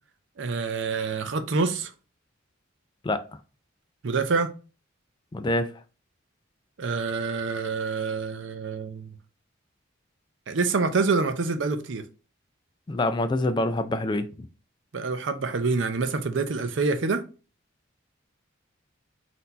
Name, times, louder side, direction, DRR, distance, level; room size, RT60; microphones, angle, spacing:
voice 1, 0.4-1.9 4.0-4.5 6.8-9.1 10.5-12.0 14.9-17.2, right 4 dB, 65° right, 0.5 m, -26 dB
voice 2, 5.3-5.7 12.9-14.3, left 2 dB, 25° left, 0.3 m, -25 dB
4.3 x 2.7 x 4.0 m
head